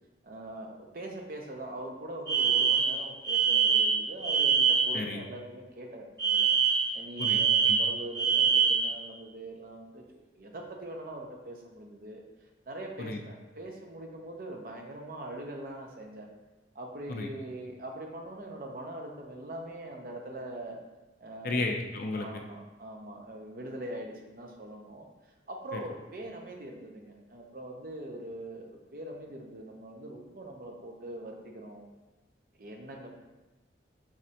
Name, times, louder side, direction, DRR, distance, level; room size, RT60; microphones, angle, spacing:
voice 1, 0.2-6.5 6.9-12.2 12.7-16.3 16.7-20.8 21.2-21.7 22.2-25.1 25.5-31.9 32.6-33.1, right 1 dB, 50° right, 1 dB, 0.6 m, -42 dB
Alarm, 2.3-5.0 6.2-8.9, right 6 dB, 20° right, 1.1 m, -24 dB
voice 2, 21.4-22.3 25.7-25.8, left 2 dB, 50° left, 3 dB, 0.4 m, -32 dB
4.9 x 3.1 x 2.8 m, 1.1 s
head